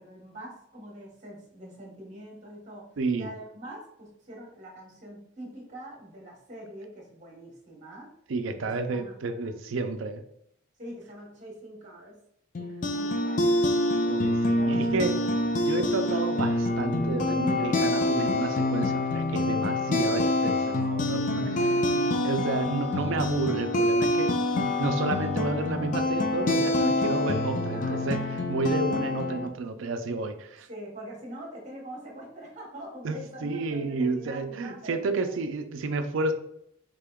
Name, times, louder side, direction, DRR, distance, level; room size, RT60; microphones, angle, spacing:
voice 1, 0.0-2.9 3.2-8.1 8.9-9.4 10.8-12.2 12.6-13.6 14.5-15.4 21.0-22.6 27.7-28.3 30.7-35.3, right 1 dB, 35° right, -2 dB, 1.0 m, -44 dB
voice 2, 3.0-3.3 8.3-10.2 14.1-15.2 15.7-30.7 33.0-36.3, right 3 dB, 70° right, 8 dB, 0.4 m, -31 dB
sound 1, 12.5-29.5, left 2 dB, 40° left, 0.3 m, -26 dB
3.7 x 3.4 x 2.2 m, 0.74 s
head